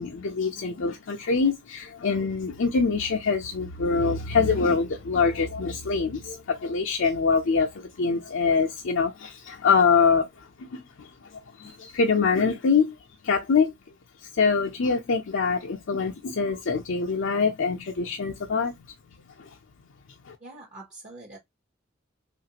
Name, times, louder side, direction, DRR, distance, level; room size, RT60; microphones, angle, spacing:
voice 1, 0.0-12.9 13.2-13.7 14.4-18.9 19.2-19.5 20.3-20.4, left 5 dB, 65° left, 0.5 m, -24 dB
voice 2, 20.4-21.4, right 2 dB, 40° right, 0.8 m, -44 dB
3.1 x 2.4 x 2.8 m
head